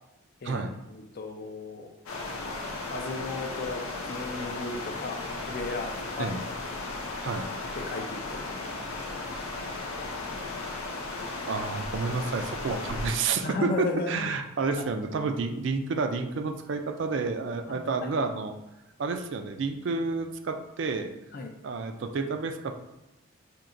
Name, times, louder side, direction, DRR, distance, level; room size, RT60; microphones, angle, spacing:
voice 1, 0.4-1.9 2.9-6.3 7.8-8.7 13.4-14.3 17.7-18.1 21.3-21.5, left 3 dB, 45° left, 4 dB, 0.4 m, -35 dB
sound 1, 2.1-13.1, left 2 dB, 90° left, 0.7 m, -35 dB
voice 2, 11.5-18.5 19.0-21.1 21.6-22.7, right 4 dB, 60° right, 6 dB, 0.4 m, -30 dB
4.4 x 2.8 x 2.6 m, 0.95 s
head